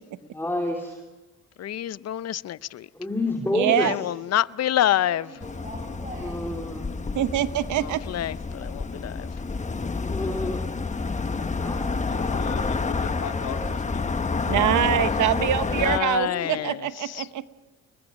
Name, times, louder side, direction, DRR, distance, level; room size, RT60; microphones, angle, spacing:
voice 1, 0.2-1.0 2.9-4.0 6.2-6.9 10.0-10.6 11.4-12.0 16.2-16.5, left 2 dB, 10° left, 3.0 m, -29 dB
voice 2, 1.6-2.9 3.8-5.3 7.8-9.3 15.8-16.8 17.0-17.3, left 12 dB, 55° left, 0.6 m, -27 dB
voice 3, 3.5-3.9 7.1-8.0 14.5-17.4, right 12 dB, 75° right, 1.1 m, -24 dB
voice 4, 4.8-6.4 10.5-11.4, right 1 dB, 25° right, 6.0 m, -44 dB
sound 1, 5.4-16.0, left 4 dB, 25° left, 1.1 m, -29 dB
voice 5, 12.1-15.2, left 7 dB, 90° left, 3.0 m, -37 dB
29.5 x 21.0 x 5.3 m
cardioid pair, 90°, 30 cm